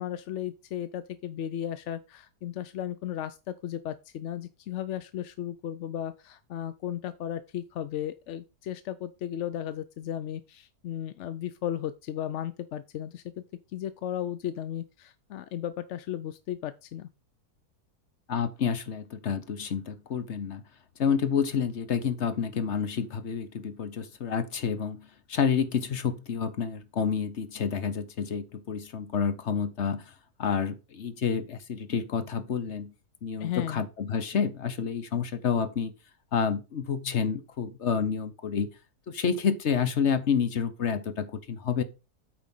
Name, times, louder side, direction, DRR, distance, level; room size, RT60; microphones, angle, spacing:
voice 1, 0.0-17.1 33.4-33.8, left 11 dB, 65° left, 0.7 m, -35 dB
voice 2, 18.3-20.6 21.0-30.1 30.4-32.9 33.2-35.9 36.3-38.7 39.1-41.8, left 7 dB, 50° left, 1.3 m, -29 dB
8.6 x 5.2 x 5.4 m
omnidirectional pair, 1.7 m